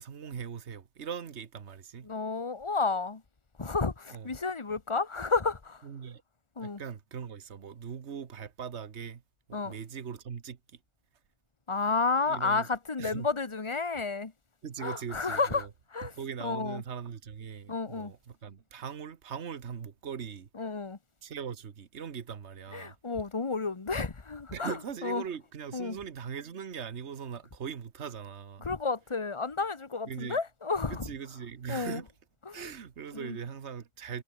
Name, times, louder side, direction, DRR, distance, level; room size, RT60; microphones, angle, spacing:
voice 1, 0.0-2.1 4.1-4.3 5.8-6.2 6.6-9.2 9.5-10.6 12.3-12.7 13.0-13.3 14.6-15.7 16.0-20.5 21.2-23.0 24.5-28.7 30.1-30.4 30.9-32.1 32.5-34.2, right 7 dB, 70° right, 1.6 m, -40 dB
voice 2, 2.0-3.2 3.6-5.8 6.6-6.8 9.5-9.7 11.7-14.3 14.8-16.1 16.4-16.8 17.7-18.1 20.5-21.0 22.7-25.2 25.7-26.0 28.6-31.1 31.7-32.0 32.4-32.7 33.1-33.4, left 4 dB, 25° left, 1.1 m, -31 dB
omnidirectional pair, 1.2 m